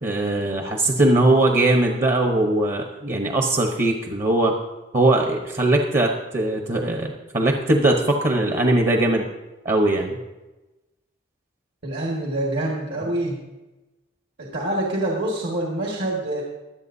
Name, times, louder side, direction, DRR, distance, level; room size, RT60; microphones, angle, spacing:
voice 1, 0.0-4.5 4.9-9.3 9.6-10.2, right 2 dB, 40° right, 2 dB, 1.0 m, -20 dB
voice 2, 11.8-13.4 14.5-16.4, right 1 dB, 65° right, -3 dB, 2.0 m, -25 dB
23.5 x 8.1 x 2.7 m, 1.1 s
head